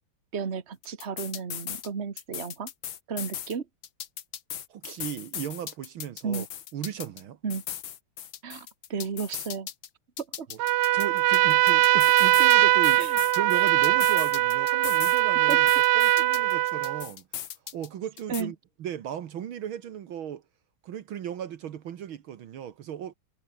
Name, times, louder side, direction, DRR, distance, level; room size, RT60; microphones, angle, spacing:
voice 1, 0.3-2.7 3.1-3.7 6.2-6.5 7.4-7.6 8.4-9.7 10.4-10.5 13.0-13.2 15.5-15.6 18.3-18.5, right 6 dB, 30° right, 1.8 m, -33 dB
sound 1, 0.8-1.9 2.2-3.5 3.8-7.2 7.5-9.9 10.2-12.6 12.8-15.2 15.5-17.9 18.2-18.4, left 10 dB, 65° left, 2.0 m, -38 dB
voice 2, 4.7-6.5 6.7-7.4 10.5-10.6 10.9-13.1 13.3-17.3 17.7-20.4 20.8-23.1, right 10 dB, 70° right, 2.0 m, -36 dB
Trumpet, 10.6-17.1, right 15 dB, 85° right, 0.9 m, -21 dB
omnidirectional pair, 2.4 m